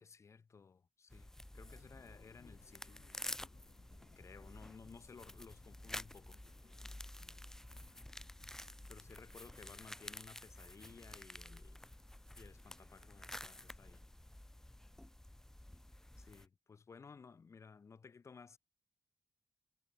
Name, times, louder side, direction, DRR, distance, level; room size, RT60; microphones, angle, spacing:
voice 1, 0.0-3.0 4.2-6.4 8.9-11.8 12.4-14.1 16.2-18.6, left 5 dB, 45° left, 3.3 m, -57 dB
sound 1, 1.1-16.5, left 1 dB, 5° left, 0.5 m, -51 dB
sound 2, 1.5-10.1, left 7 dB, 70° left, 4.1 m, -68 dB
wide cardioid pair, 105°, 7 cm